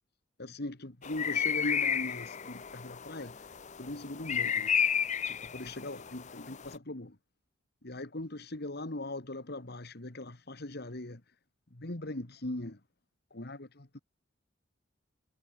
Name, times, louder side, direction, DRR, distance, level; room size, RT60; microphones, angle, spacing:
voice 1, 0.4-3.5 3.8-4.7 5.3-7.2 7.8-11.2 11.7-12.8 13.3-14.0, left 1 dB, 55° left, 2.0 m, -40 dB
sound 1, 1.0-6.8, left 8 dB, 35° left, 0.7 m, -32 dB
head